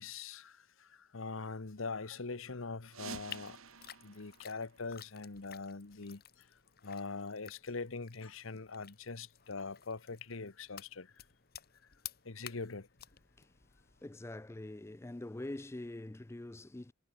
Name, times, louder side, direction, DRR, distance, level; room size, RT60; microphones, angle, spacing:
voice 1, 0.0-3.6 4.0-11.2 12.2-12.9, left 4 dB, 70° left, 1.1 m, -43 dB
sound 1, 2.9-5.5, right 5 dB, 80° right, 1.8 m, -51 dB
sound 2, 3.3-14.1, left 10 dB, 50° left, 2.1 m, -54 dB
voice 2, 14.0-16.9, left 1 dB, 15° left, 0.4 m, -44 dB
head